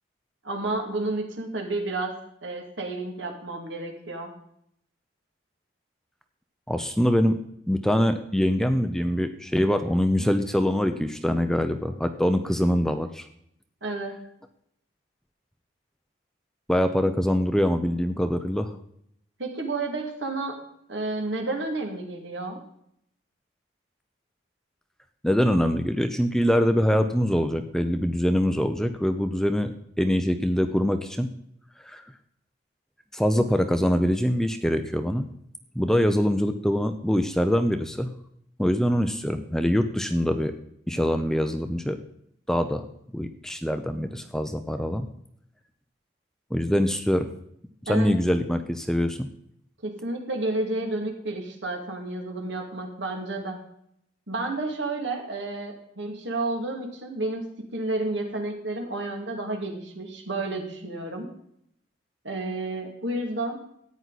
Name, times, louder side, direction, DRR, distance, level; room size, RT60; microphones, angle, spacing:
voice 1, 0.4-2.1 2.4-4.3 13.8-14.2 19.4-20.6 20.9-22.6 47.9-48.1 49.8-53.6 54.3-57.4 57.7-61.3 62.2-63.8, right 2 dB, 70° right, 3 dB, 2.5 m, -31 dB
voice 2, 6.7-7.4 7.7-13.3 16.7-18.7 25.2-31.3 31.8-32.0 33.1-35.3 35.8-38.1 38.6-40.5 40.9-42.0 42.5-42.8 43.1-45.1 46.5-47.3 47.9-49.3, equal, 5° left, 8 dB, 0.6 m, -24 dB
14.0 x 9.6 x 4.1 m, 0.72 s
head